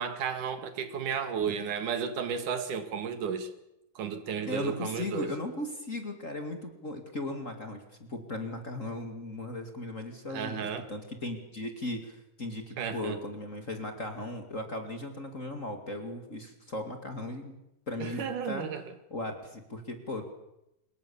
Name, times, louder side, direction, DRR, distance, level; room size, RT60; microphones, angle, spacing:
voice 1, 0.0-3.5 4.0-5.3 10.3-10.9 12.8-13.2 18.0-18.8, right 7 dB, 80° right, 10 dB, 3.5 m, -33 dB
voice 2, 4.5-17.6 17.9-18.7 19.1-20.2, left 2 dB, 25° left, 6 dB, 2.3 m, -37 dB
25.5 x 22.0 x 7.1 m, 0.88 s
omnidirectional pair, 3.6 m